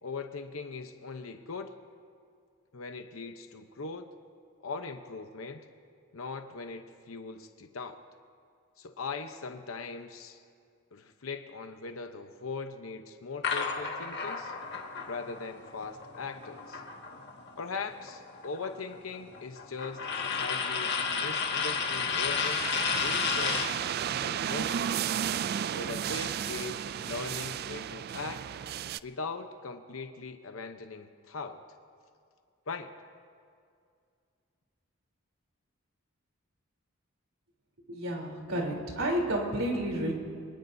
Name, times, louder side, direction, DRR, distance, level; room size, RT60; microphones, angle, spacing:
voice 1, 0.0-1.7 2.7-4.1 4.6-5.7 6.1-8.0 8.8-10.4 10.9-14.5 15.1-16.8 17.6-23.7 24.2-24.9 25.8-28.4 29.0-31.6 32.7-32.9, left 4 dB, 80° left, 7 dB, 0.8 m, -40 dB
sound 1, 13.4-17.5 17.8-23.8, left 5 dB, 55° left, 1.6 m, -32 dB
sound 2, 21.1-29.0, right 9 dB, 50° right, 0.3 m, -34 dB
voice 2, 37.9-40.1, right 1 dB, 85° right, -1 dB, 3.5 m, -31 dB
27.0 x 19.5 x 2.7 m, 2.3 s
head